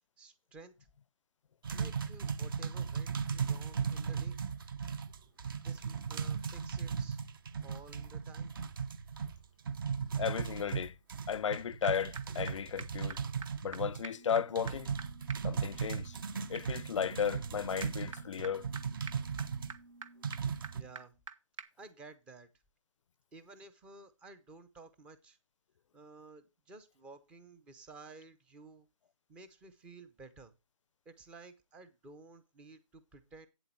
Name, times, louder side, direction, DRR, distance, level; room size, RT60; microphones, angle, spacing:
voice 1, 0.2-0.7 1.7-4.4 5.6-7.2 7.6-8.5 20.7-21.1 21.8-22.5 23.3-25.4 25.9-28.9 29.3-30.5 31.1-33.5, right 3 dB, 5° right, 0.5 m, -54 dB
sound 1, 1.6-19.7 20.2-20.8, right 6 dB, 40° right, 0.8 m, -37 dB
voice 2, 10.2-11.0 11.3-13.2 13.6-14.9 15.4-16.2 16.5-18.7, left 8 dB, 65° left, 0.4 m, -34 dB
sound 2, 11.5-11.6 11.8-11.9 12.2-12.3 12.5-12.6 12.8-12.9 13.1-13.2 13.4-13.5 13.7-13.8 14.0-21.3 21.6-21.7, right 5 dB, 70° right, 1.4 m, -49 dB
8.6 x 7.9 x 4.4 m
hypercardioid pair, 160°, 17 cm